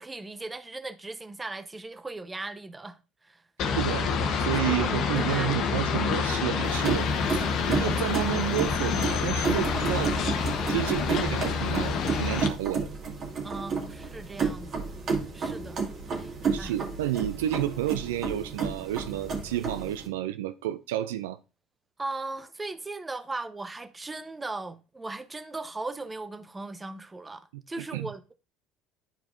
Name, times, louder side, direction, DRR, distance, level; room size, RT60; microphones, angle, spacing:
voice 1, 0.0-3.4 4.6-5.8 13.4-14.9 15.3-15.8 16.2-16.7 22.0-28.3, right 2 dB, 20° right, 0.8 m, -38 dB
sound 1, 3.6-12.5, left 5 dB, 60° left, 0.9 m, -27 dB
voice 2, 3.7-10.1 10.7-12.9 16.5-21.4 27.5-28.1, right 13 dB, 80° right, 0.4 m, -31 dB
sound 2, 6.6-20.1, right 5 dB, 50° right, 2.0 m, -32 dB
11.5 x 4.6 x 2.6 m
hypercardioid pair, 65°, 0 cm